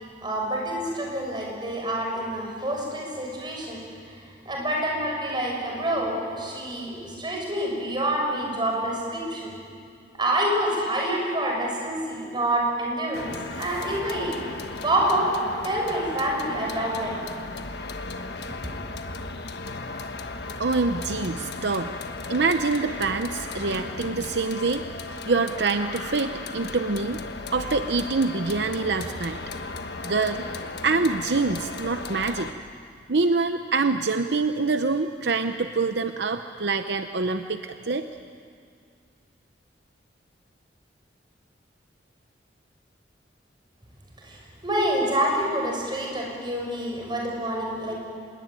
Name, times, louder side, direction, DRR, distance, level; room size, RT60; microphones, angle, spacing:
voice 1, 0.2-3.8 4.1-9.6 10.1-14.4 14.8-15.3 15.6-17.2 44.2-47.9, right 1 dB, 25° right, -1 dB, 6.7 m, -27 dB
sound 1, 13.1-32.5, left 3 dB, 60° left, 1.4 m, -36 dB
voice 2, 20.6-21.9 22.3-24.8 25.2-27.2 27.5-29.4 30.0-30.4 30.8-32.5 33.1-38.1, right 3 dB, 65° right, 8 dB, 0.8 m, -25 dB
26.5 x 21.5 x 9.1 m, 2.3 s
head